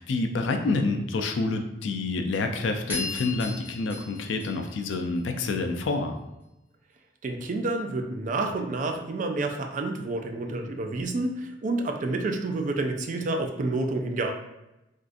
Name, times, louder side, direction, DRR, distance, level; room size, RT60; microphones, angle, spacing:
voice 1, 0.0-6.1, left 3 dB, 75° left, 6 dB, 0.4 m, -28 dB
sound 1, 2.9-5.5, left 3 dB, 10° right, 1.0 m, -36 dB
voice 2, 7.2-14.3, right 2 dB, 40° right, 4 dB, 0.3 m, -29 dB
3.5 x 2.4 x 2.5 m, 0.94 s
head